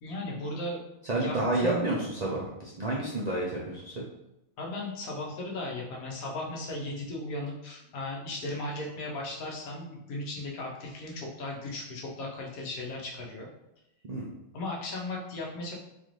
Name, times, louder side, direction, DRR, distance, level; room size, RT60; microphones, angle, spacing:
voice 1, 0.0-1.9 4.6-13.5 14.5-15.7, left 2 dB, 85° left, -2 dB, 1.3 m, -36 dB
voice 2, 1.1-3.9 14.1-14.3, right 2 dB, 65° right, -5 dB, 0.4 m, -30 dB
4.0 x 2.6 x 3.0 m, 0.87 s
omnidirectional pair, 1.5 m